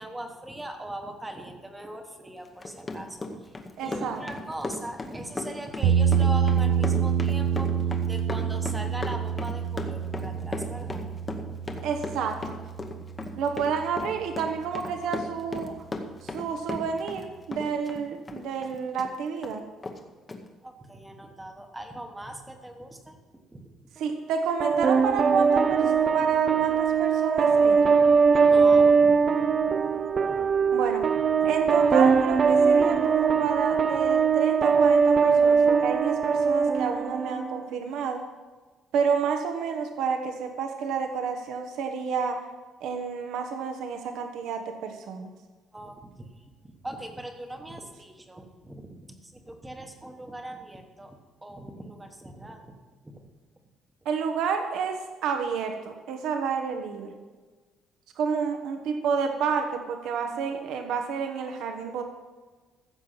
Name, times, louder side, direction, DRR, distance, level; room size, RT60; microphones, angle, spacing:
voice 1, 0.0-11.4 11.6-11.8 20.6-23.2 23.5-24.0 28.5-30.1 31.4-31.5 45.7-52.8 53.0-53.2, right 1 dB, 10° right, 5 dB, 1.1 m, -40 dB
Run, 2.4-17.3 17.5-19.1 19.4-19.5 19.8-20.0 20.3-20.4, left 2 dB, 15° left, 0.9 m, -36 dB
voice 2, 3.8-4.2 11.8-12.6 13.4-15.7 16.2-19.6 24.0-27.9 30.7-31.0 31.4-38.2 38.9-42.4 42.8-45.3 54.0-57.2 58.2-62.0, right 6 dB, 65° right, 5 dB, 1.2 m, -30 dB
sound 1, 5.8-13.9, right 8 dB, 85° right, 0.7 m, -27 dB
sound 2, 24.6-37.6, right 5 dB, 30° right, 0.4 m, -21 dB
15.0 x 7.3 x 5.7 m, 1.3 s
cardioid pair, 180°, 0 cm